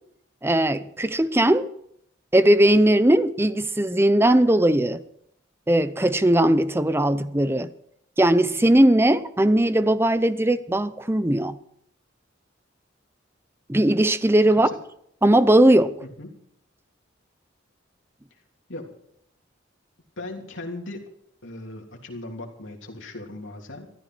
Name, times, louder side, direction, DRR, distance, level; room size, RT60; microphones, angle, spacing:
voice 1, 0.4-1.7 2.3-5.0 5.7-7.7 8.2-11.6 13.7-14.7 15.2-15.9, right 1 dB, 10° right, 0.6 m, -19 dB
voice 2, 20.2-21.1 21.4-23.9, left 2 dB, 75° left, 3.2 m, -38 dB
14.5 x 13.5 x 6.2 m
head